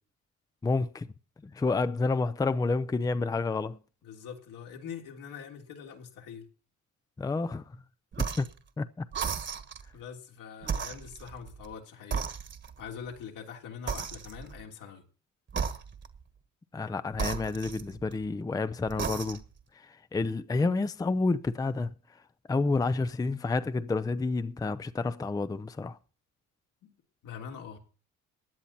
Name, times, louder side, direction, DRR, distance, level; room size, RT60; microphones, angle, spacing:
voice 1, 0.6-1.1 1.4-3.8 7.2-7.6 8.2-8.5 8.8-9.0 16.7-19.4 19.7-21.9 22.5-26.0, left 3 dB, 10° left, 0.5 m, -29 dB
voice 2, 4.0-6.5 7.7-7.8 9.9-12.5 12.8-15.0 26.8-26.9 27.2-27.8, left 7 dB, 80° left, 3.3 m, -44 dB
sound 1, 8.1-8.6 9.1-9.9 10.6-11.7 12.1-12.9 13.9-14.6 15.5-16.2 17.1-18.3 18.9-19.6, right 6 dB, 35° right, 1.4 m, -35 dB
16.5 x 10.5 x 4.2 m
cardioid pair, 130°, 31 cm